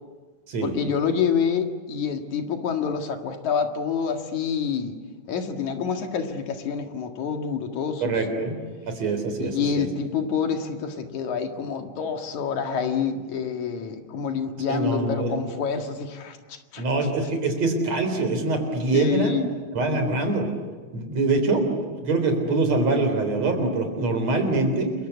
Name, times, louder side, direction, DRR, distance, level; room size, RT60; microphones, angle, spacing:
voice 1, 0.6-5.0 5.3-8.4 9.4-16.8 18.9-19.5 19.9-20.2, left 6 dB, 80° left, 5 dB, 3.3 m, -27 dB
voice 2, 8.0-8.6 8.9-9.9 14.7-15.4 16.8-19.4 19.7-20.5 20.9-24.9, right 3 dB, 60° right, 6 dB, 5.0 m, -24 dB
29.5 x 23.0 x 8.2 m, 1.4 s
omnidirectional pair, 3.3 m